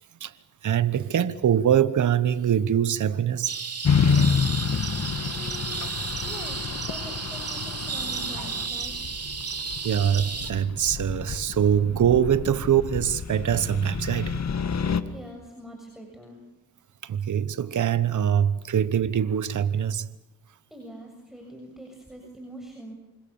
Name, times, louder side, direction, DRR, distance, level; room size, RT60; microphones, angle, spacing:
voice 1, 0.6-3.6 4.0-4.3 5.2-5.3 9.8-14.4 17.0-20.1, right 9 dB, 65° right, 1.2 m, -23 dB
sound 1, 3.5-10.5, right 5 dB, 50° right, 3.3 m, -33 dB
sound 2, 3.8-15.0, left 6 dB, 55° left, 1.8 m, -29 dB
voice 2, 5.3-5.7 6.2-9.1 15.1-16.4 20.7-22.9, right 1 dB, ahead, 7.1 m, -43 dB
28.5 x 26.0 x 7.2 m
cardioid pair, 70°, 32 cm